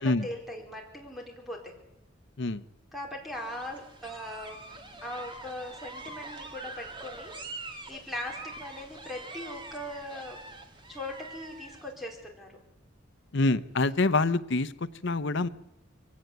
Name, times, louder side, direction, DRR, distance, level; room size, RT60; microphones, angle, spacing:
voice 1, 0.0-1.7 2.9-4.7 5.0-10.4 10.9-12.5, left 1 dB, ahead, 1 dB, 4.5 m, -40 dB
sound 1, 3.3-11.9, right 2 dB, 25° right, 1.9 m, -44 dB
voice 2, 13.3-14.7 15.0-15.5, left 2 dB, 65° left, 13 dB, 0.8 m, -25 dB
23.0 x 17.0 x 8.1 m, 0.88 s
head